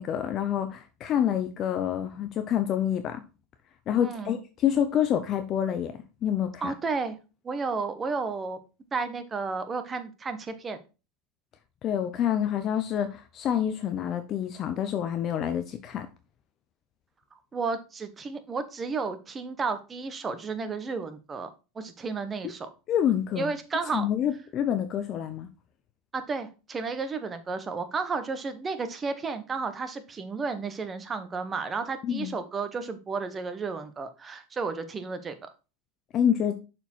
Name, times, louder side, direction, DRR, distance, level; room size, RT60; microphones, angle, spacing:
voice 1, 0.0-3.2 3.9-5.9 6.2-6.7 11.8-16.1 22.9-23.5 23.9-25.5 32.0-32.3 36.1-36.6, left 9 dB, 40° left, 0.7 m, -27 dB
voice 2, 4.0-4.4 6.6-7.2 7.4-8.6 8.9-10.8 17.5-21.5 21.7-22.7 23.4-24.1 26.1-35.4, right 4 dB, 25° right, 1.1 m, -32 dB
6.7 x 4.5 x 4.5 m
supercardioid pair, 110°, 0 cm